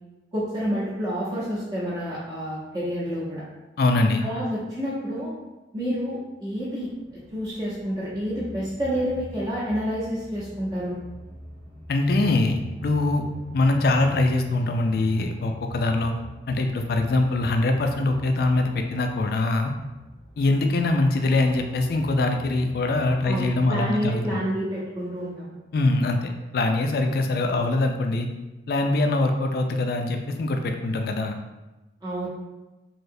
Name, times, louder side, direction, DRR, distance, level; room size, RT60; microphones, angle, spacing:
voice 1, 0.3-3.4 4.2-5.3 5.7-11.0 23.2-25.5 32.0-32.3, equal, 20° right, -9 dB, 0.7 m, -29 dB
voice 2, 3.8-4.2 11.9-13.2 13.5-16.1 16.5-19.7 20.4-24.4 25.7-28.3 28.7-31.4, left 2 dB, 55° left, 4 dB, 0.3 m, -23 dB
sound 1, 6.8-23.5, right 1 dB, 75° right, 1.2 m, -43 dB
3.2 x 2.7 x 2.6 m, 1.1 s
head